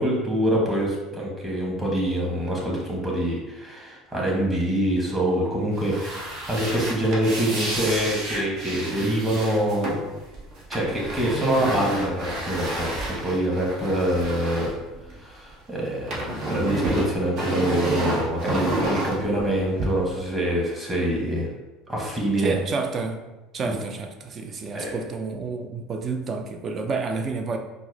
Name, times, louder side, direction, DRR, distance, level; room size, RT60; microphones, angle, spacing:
voice 1, 0.0-10.1 10.7-14.7 15.1-21.5 21.9-22.5 23.6-23.7 24.7-25.0, right 1 dB, 20° right, -4 dB, 1.4 m, -25 dB
sound 1, 5.7-15.5 15.8-19.8, right 1 dB, 60° right, 1.0 m, -30 dB
voice 2, 22.4-23.2 23.5-27.6, right 4 dB, 40° right, 5 dB, 0.4 m, -30 dB
4.5 x 2.0 x 2.8 m, 1.1 s
supercardioid pair, 90°, 0 cm